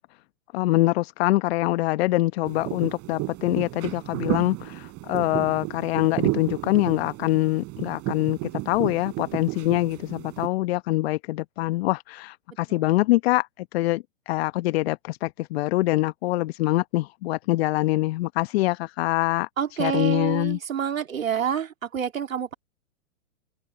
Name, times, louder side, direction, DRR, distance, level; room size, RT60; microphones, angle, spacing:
voice 1, 0.5-19.5 19.8-20.6, left 18 dB, 50° left, 1.0 m, -24 dB
sound 1, 2.5-10.5, right 22 dB, 35° right, 6.1 m, -32 dB
voice 2, 19.6-22.5, right 8 dB, 80° right, 3.1 m, -28 dB
open air
hypercardioid pair, 115°, 40 cm